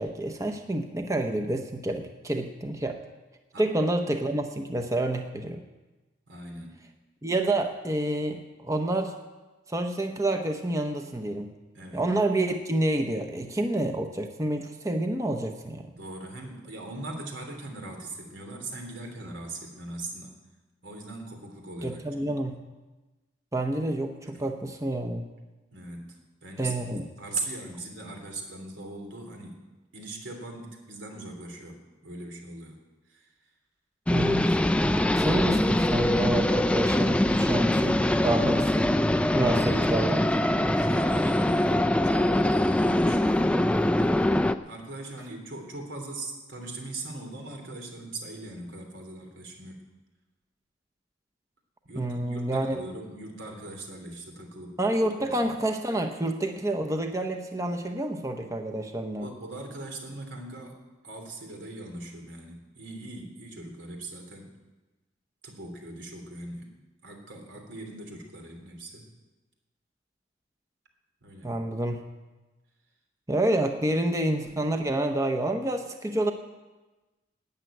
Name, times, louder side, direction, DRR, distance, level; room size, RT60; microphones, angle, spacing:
voice 1, 0.0-3.0 3.6-5.6 7.2-9.1 9.7-11.5 11.9-15.9 21.8-22.6 23.5-25.3 26.6-27.0 34.1-34.5 35.1-38.9 39.2-40.2 52.0-52.8 54.8-59.3 71.4-72.0 73.3-76.3, right 1 dB, 15° right, 5 dB, 0.8 m, -28 dB
voice 2, 3.5-3.9 6.3-6.8 11.7-12.1 16.0-20.4 20.8-22.1 24.3-24.4 25.7-26.9 27.2-29.6 29.9-32.8 33.1-33.3 40.8-41.8 42.0-43.6 44.0-44.3 44.7-49.8 51.8-54.8 55.2-55.5 59.2-64.5 65.4-66.7 67.0-69.1 71.2-71.6, right 2 dB, 85° right, 2 dB, 3.0 m, -40 dB
sound 1, 34.1-44.6, left 1 dB, 5° left, 0.4 m, -23 dB
12.5 x 9.3 x 9.1 m, 1.2 s
head